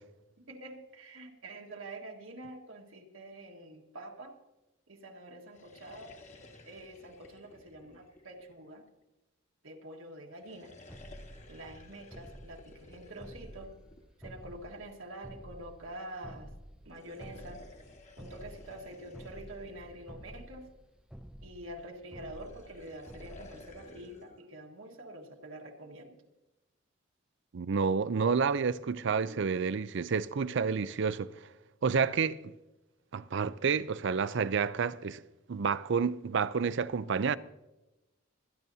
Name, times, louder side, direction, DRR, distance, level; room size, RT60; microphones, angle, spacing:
voice 1, 0.5-4.4 4.9-6.2 6.7-8.9 9.6-10.8 11.5-13.8 14.2-16.5 16.9-17.6 18.2-20.7 21.4-26.2 29.3-29.5, right 1 dB, 75° right, 1.7 m, -46 dB
sound 1, 5.4-9.0 10.3-14.7 16.8-20.8 22.1-24.4, left 2 dB, 35° left, 1.4 m, -55 dB
sound 2, 10.9-24.0, equal, 5° right, 0.5 m, -51 dB
voice 2, 27.5-31.3 31.8-32.4 33.1-35.2 35.5-37.4, right 5 dB, 60° right, 0.5 m, -29 dB
26.0 x 10.5 x 2.8 m
head